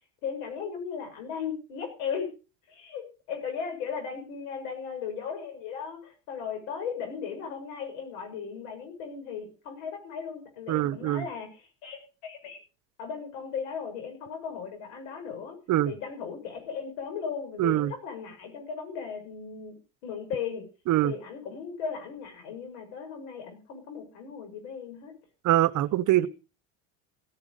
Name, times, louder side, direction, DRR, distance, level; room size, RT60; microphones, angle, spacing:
voice 1, 0.2-2.3 2.7-12.6 13.0-15.6 15.8-20.7 21.0-25.1 26.2-26.3, left 6 dB, 90° left, 6.8 m, -37 dB
voice 2, 10.7-11.2 15.7-15.9 17.6-17.9 20.9-21.1 25.4-26.3, right 14 dB, 55° right, 1.0 m, -23 dB
16.5 x 10.5 x 5.2 m
cardioid pair, 120°, 37 cm